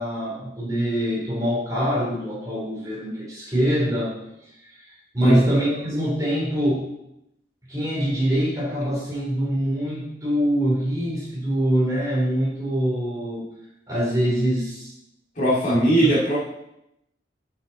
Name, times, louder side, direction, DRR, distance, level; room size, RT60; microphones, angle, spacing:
voice 1, 0.0-4.2 4.6-6.9 7.7-13.4 13.9-14.9 15.7-16.1, equal, 20° right, -5 dB, 3.2 m, -24 dB
voice 2, 15.4-16.4, right 1 dB, 45° left, -6 dB, 2.4 m, -19 dB
8.8 x 6.5 x 4.1 m, 0.82 s
head